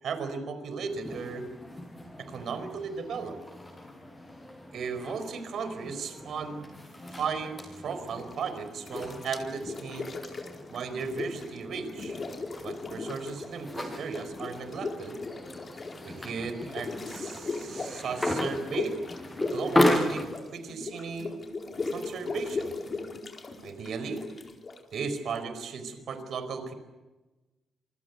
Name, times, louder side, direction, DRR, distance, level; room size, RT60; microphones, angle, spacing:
voice 1, 0.0-1.5 2.2-3.4 4.7-6.6 7.1-10.1 10.7-12.2 12.6-15.2 16.0-19.0 19.5-20.2 20.5-21.3 21.8-22.7 23.6-24.2 24.9-26.7, right 5 dB, 70° right, 10 dB, 4.7 m, -35 dB
sound 1, 0.9-20.4, left 1 dB, 15° left, 7.6 m, -35 dB
sound 2, 8.1-8.5 8.8-11.6 11.8-13.6 13.9-25.4, left 3 dB, 40° left, 4.4 m, -37 dB
27.5 x 24.0 x 8.3 m, 1.1 s
cardioid pair, 105°, 0 cm